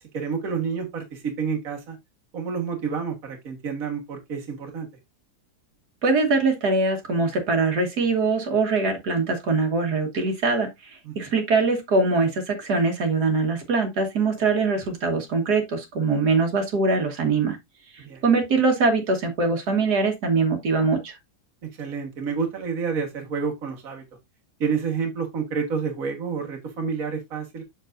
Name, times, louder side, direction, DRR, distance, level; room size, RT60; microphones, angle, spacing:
voice 1, 0.1-2.0 2.3-4.9 11.0-11.1 18.0-18.2 21.6-24.0 24.6-27.6, right 5 dB, 55° right, 1.8 m, -29 dB
voice 2, 6.0-17.6 17.9-21.2, right 3 dB, 75° right, 2.1 m, -23 dB
6.9 x 6.4 x 2.5 m
omnidirectional pair, 1.7 m